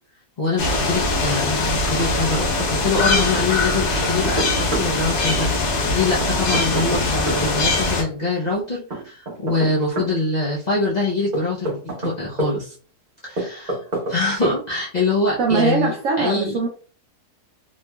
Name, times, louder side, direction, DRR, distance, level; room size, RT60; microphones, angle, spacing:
voice 1, 0.4-12.7 13.2-13.8 14.1-16.5, left 3 dB, 75° left, -5 dB, 0.4 m, -24 dB
sound 1, 0.6-8.0, left 3 dB, 55° left, 0.9 m, -22 dB
Knock, 1.3-2.1 2.3-2.4 3.7-4.9 6.2-7.4 8.9-10.1 11.3-12.5 13.4-14.2 14.4-14.6, right 2 dB, 35° right, 0.7 m, -28 dB
voice 2, 15.4-16.7, right 4 dB, 65° right, 0 dB, 0.9 m, -21 dB
3.2 x 2.8 x 2.2 m, 0.41 s
omnidirectional pair, 1.7 m